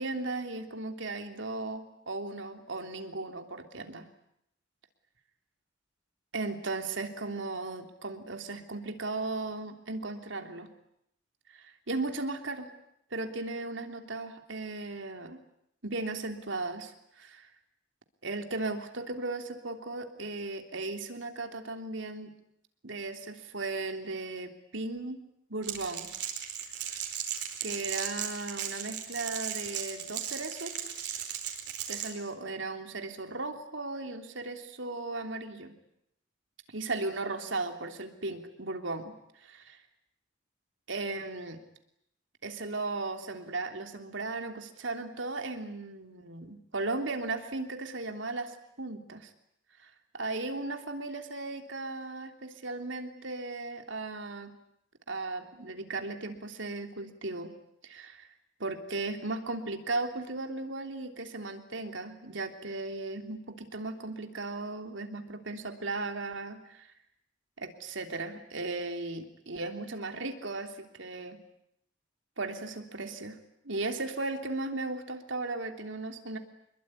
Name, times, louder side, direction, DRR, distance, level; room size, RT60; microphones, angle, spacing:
voice 1, 0.0-4.0 6.3-10.7 11.5-12.7 13.1-15.4 15.8-17.5 18.2-22.3 22.8-25.2 25.5-26.1 27.6-30.9 31.9-35.7 36.7-39.6 40.9-41.6 42.4-49.3 49.8-54.5 55.1-57.5 57.8-58.3 58.6-66.9 67.6-71.4 72.4-73.4 73.6-76.4, right 2 dB, 75° right, 6 dB, 3.3 m, -36 dB
Crackle, 25.6-32.1, right 9 dB, 60° right, 4.6 m, -36 dB
27.0 x 22.0 x 9.8 m, 0.76 s
head